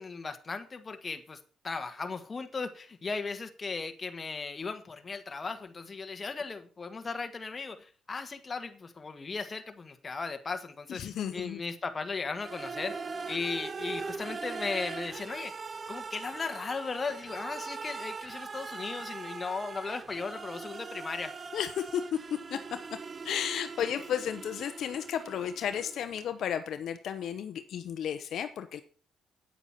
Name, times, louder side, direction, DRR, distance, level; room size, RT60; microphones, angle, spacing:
voice 1, 0.0-1.4 1.6-12.9 13.3-15.5 15.9-21.3, left 4 dB, 30° left, 7 dB, 1.5 m, -37 dB
voice 2, 10.9-11.6 21.5-22.2 22.5-22.8 23.2-28.8, left 9 dB, 70° left, 9 dB, 0.8 m, -33 dB
sound 1, 12.4-26.2, right 4 dB, 35° right, 0.5 m, -41 dB
9.1 x 8.2 x 5.7 m, 0.40 s
cardioid pair, 90°, 0 cm